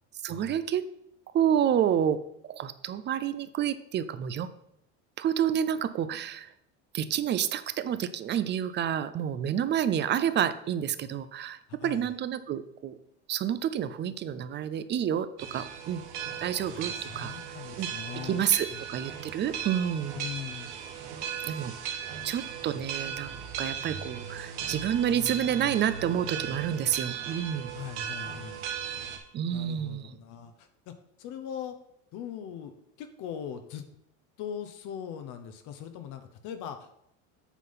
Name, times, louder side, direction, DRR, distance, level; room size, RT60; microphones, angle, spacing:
voice 1, 0.2-0.8 1.3-2.2 2.5-4.5 5.2-6.5 6.9-13.0 13.3-16.0 16.4-17.3 17.8-17.9 18.2-20.2 21.5-21.7 22.2-27.7 29.3-30.2, right 9 dB, 30° right, 13 dB, 0.5 m, -29 dB
voice 2, 11.8-12.2 16.7-18.8 20.1-20.7 27.7-28.6 29.5-31.8 32.1-33.8 34.4-37.0, left 8 dB, 55° left, 7 dB, 0.9 m, -41 dB
sound 1, 15.4-29.2, right 8 dB, 90° right, 1.3 m, -37 dB
8.3 x 3.8 x 5.6 m, 0.77 s
supercardioid pair, 110°, 35 cm